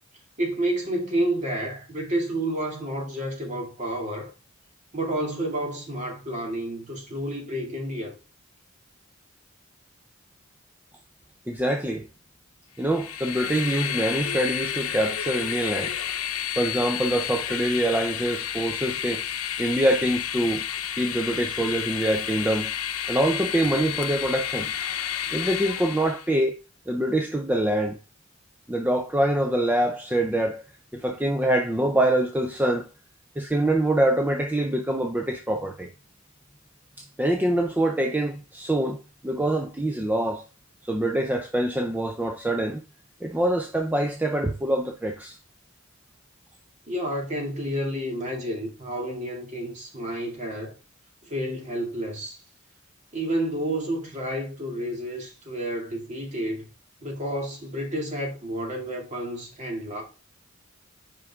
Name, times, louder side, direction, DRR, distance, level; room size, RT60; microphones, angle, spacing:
voice 1, 0.4-4.3 4.9-8.2 46.9-50.7 51.2-52.4 53.1-56.7 57.0-60.0, right 1 dB, 35° right, 2.2 m, -30 dB
voice 2, 11.5-12.1 12.8-15.9 16.6-19.3 19.6-20.7 21.0-22.7 23.1-24.7 25.3-26.5 26.9-28.0 28.7-30.6 30.9-32.9 33.4-35.9 37.0-39.0 39.2-40.4 40.9-42.8 43.2-45.4, right 1 dB, 10° right, 0.5 m, -25 dB
Train, 12.8-26.3, left 9 dB, 85° left, 0.7 m, -31 dB
5.3 x 5.2 x 3.5 m
head